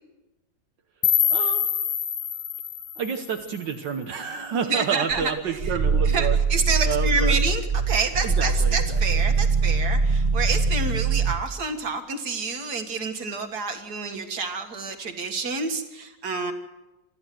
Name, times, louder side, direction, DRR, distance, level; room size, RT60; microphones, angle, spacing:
sound 1, 1.0-4.0, left 9 dB, 65° left, 1.8 m, -26 dB
voice 1, 1.3-1.6 3.0-6.4 6.8-7.4 8.2-9.0, right 7 dB, 80° right, 4 dB, 1.8 m, -29 dB
voice 2, 4.7-5.8 6.0-16.5, right 4 dB, 60° right, 6 dB, 2.3 m, -28 dB
Growling, 5.1-11.4, right 4 dB, 40° right, 1.0 m, -23 dB
26.0 x 14.0 x 7.7 m, 1.1 s
omnidirectional pair, 2.0 m